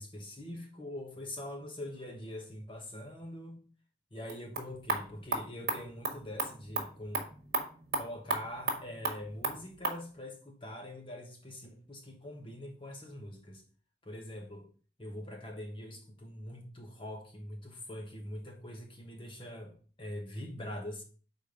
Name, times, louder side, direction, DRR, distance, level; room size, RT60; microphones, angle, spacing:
voice 1, 0.0-3.6 4.1-7.3 8.0-13.6 14.0-14.7 15.0-21.0, left 1 dB, 30° left, 1.1 m, -43 dB
sound 1, 4.2-10.0, right 3 dB, 55° right, 1.4 m, -36 dB
5.2 x 4.2 x 5.1 m
head